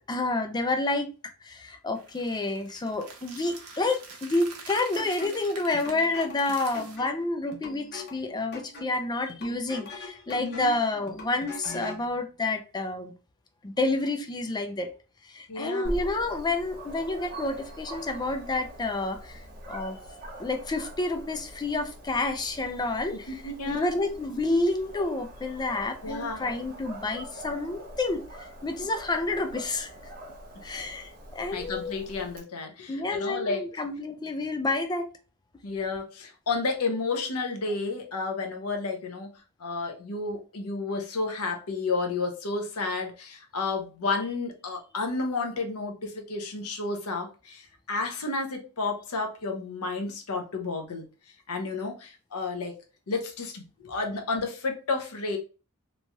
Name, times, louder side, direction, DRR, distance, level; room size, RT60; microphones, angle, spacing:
voice 1, 0.1-1.1 1.4-13.1 13.6-14.9 15.2-19.4 19.7-20.0 20.4-29.9 30.6-31.9 32.9-35.1, left 2 dB, 20° left, 0.4 m, -29 dB
sound 1, 2.0-7.0, right 4 dB, 85° right, 0.8 m, -46 dB
sound 2, 5.0-12.1, left 2 dB, 50° left, 0.7 m, -43 dB
voice 2, 10.4-10.7 15.5-15.9 23.3-23.9 26.0-26.4 31.5-33.6 35.6-39.3 39.6-51.0 51.5-52.8 53.1-55.4, left 3 dB, 80° left, 0.7 m, -31 dB
Dog, 15.8-32.4, right 1 dB, 40° right, 0.7 m, -43 dB
3.1 x 2.7 x 2.2 m
head